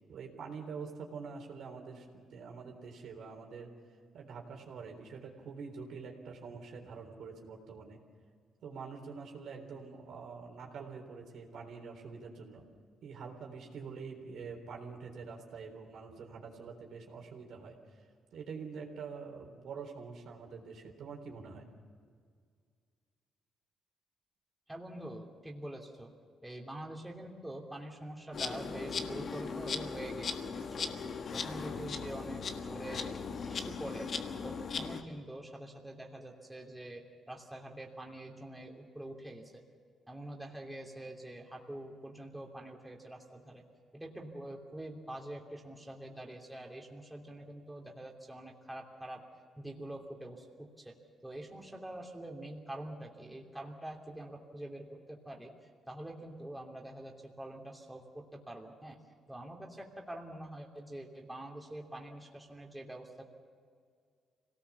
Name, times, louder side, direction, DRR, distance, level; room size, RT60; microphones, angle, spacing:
voice 1, 0.1-3.7 4.1-8.0 8.6-12.7 13.0-18.0 18.3-21.7, right 5 dB, 70° right, 1 dB, 3.7 m, -46 dB
voice 2, 24.7-26.1 26.4-30.9 31.3-34.1 34.4-39.6 40.1-43.6 43.9-49.2 49.6-51.0 51.2-55.5 55.9-59.0 59.3-63.2, right 1 dB, 10° right, 0 dB, 3.0 m, -45 dB
Insect, 28.3-35.0, left 5 dB, 55° left, 1.5 m, -38 dB
25.0 x 18.0 x 7.1 m, 2.1 s
cardioid pair, 90°, 0 cm